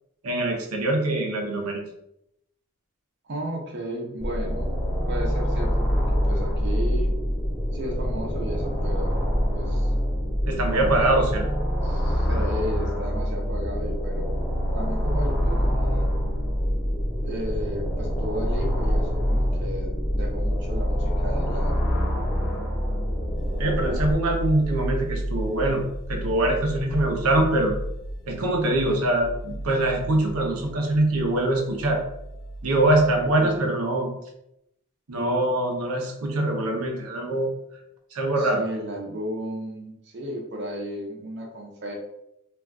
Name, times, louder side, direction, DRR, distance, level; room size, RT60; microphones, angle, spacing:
voice 1, 0.2-1.8 10.5-11.5 23.6-25.8 26.1-27.7 28.3-32.0 32.6-34.1 35.1-37.5 38.1-38.6, right 1 dB, 85° right, 1 dB, 0.7 m, -23 dB
voice 2, 3.2-4.7 5.1-7.2 7.7-9.9 10.7-11.5 11.8-14.3 14.7-16.3 17.2-21.8 33.3-33.7 38.4-42.0, equal, 50° right, 0 dB, 0.6 m, -34 dB
sound 1, 4.2-24.1, equal, ahead, 0.8 m, -25 dB
sound 2, 23.3-33.6, right 1 dB, 55° left, 0.4 m, -34 dB
2.4 x 2.2 x 3.5 m, 0.80 s
head